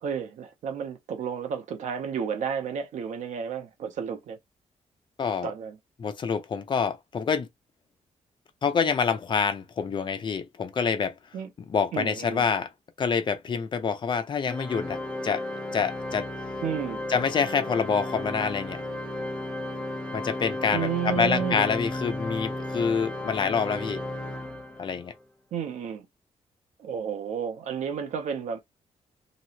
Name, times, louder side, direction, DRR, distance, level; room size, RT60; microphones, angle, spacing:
voice 1, 0.0-4.4 5.4-5.8 11.3-11.5 11.9-12.5 16.6-17.0 20.7-21.7 25.5-26.1 26.8-28.6, right 7 dB, 90° right, 0.9 m, -31 dB
voice 2, 5.2-5.5 6.0-7.5 8.6-11.1 11.7-12.7 13.0-15.4 15.7-16.3 17.1-18.8 20.1-24.0 24.8-25.1, left 6 dB, 40° left, 0.6 m, -27 dB
Organ, 14.5-25.1, left 1 dB, 10° left, 0.8 m, -34 dB
3.0 x 2.8 x 2.9 m
wide cardioid pair, 145°, 12 cm